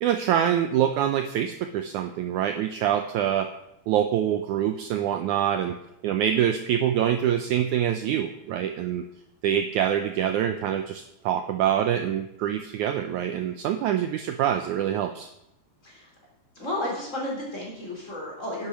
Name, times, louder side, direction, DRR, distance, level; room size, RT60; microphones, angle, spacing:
voice 1, 0.0-3.5 3.9-5.7 6.0-9.0 9.4-15.3, right 10 dB, 85° right, 6 dB, 1.7 m, -25 dB
voice 2, 16.6-18.7, left 1 dB, 20° left, -2 dB, 3.7 m, -32 dB
10.5 x 8.6 x 6.1 m, 0.83 s
omnidirectional pair, 4.2 m